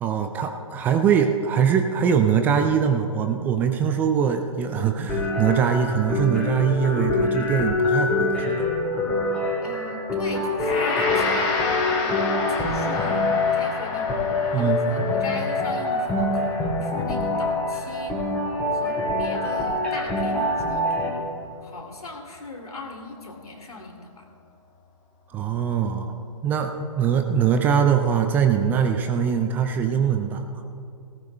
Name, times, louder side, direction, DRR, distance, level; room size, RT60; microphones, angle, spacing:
voice 1, 0.0-8.7 14.5-14.8 25.3-26.2 26.4-30.5, right 7 dB, 10° right, 6 dB, 0.3 m, -22 dB
sound 1, 5.1-21.1, left 2 dB, 5° left, 2.8 m, -25 dB
voice 2, 9.6-11.5 12.0-14.1 14.6-18.2 18.7-21.2 21.6-24.2, left 2 dB, 80° left, 1 dB, 2.7 m, -38 dB
Gong, 10.6-19.8, left 3 dB, 25° left, 2.4 m, -31 dB
18.5 x 17.5 x 2.2 m, 2.6 s
figure-of-eight pair, 130°, 19 cm